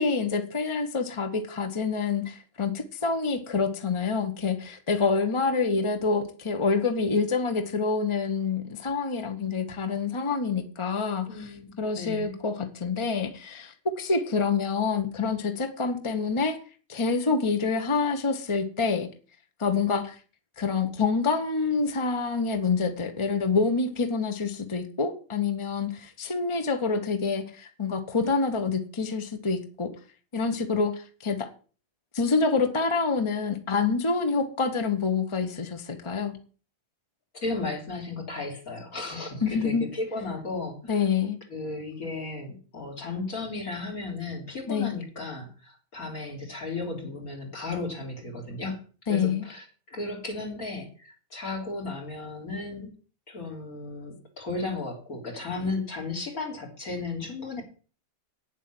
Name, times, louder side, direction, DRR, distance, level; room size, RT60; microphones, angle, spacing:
voice 1, 0.0-11.5 11.8-16.6 16.9-19.1 19.6-20.2 20.6-29.9 30.3-31.5 32.1-36.4 39.4-39.8 40.9-41.4 44.7-44.9 49.1-49.5, left 4 dB, 20° left, 7 dB, 1.1 m, -27 dB
voice 2, 11.3-12.4 37.3-41.1 41.5-48.8 49.1-52.9 53.3-57.6, left 3 dB, 80° left, 0 dB, 4.0 m, -35 dB
9.4 x 7.6 x 7.6 m, 0.39 s
omnidirectional pair, 1.5 m